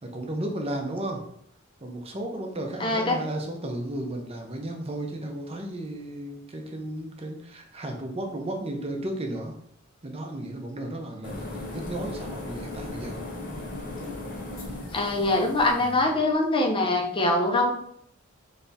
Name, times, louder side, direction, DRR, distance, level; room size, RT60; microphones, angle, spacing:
voice 1, 0.0-1.2 1.8-9.5 10.0-13.3 15.7-16.0, right 1 dB, 30° right, 2 dB, 0.7 m, -34 dB
voice 2, 2.8-3.2 14.9-17.7, left 2 dB, 25° left, 2 dB, 0.7 m, -23 dB
sound 1, 11.2-16.0, left 2 dB, 45° left, 1.1 m, -37 dB
3.4 x 3.3 x 4.1 m, 0.68 s
head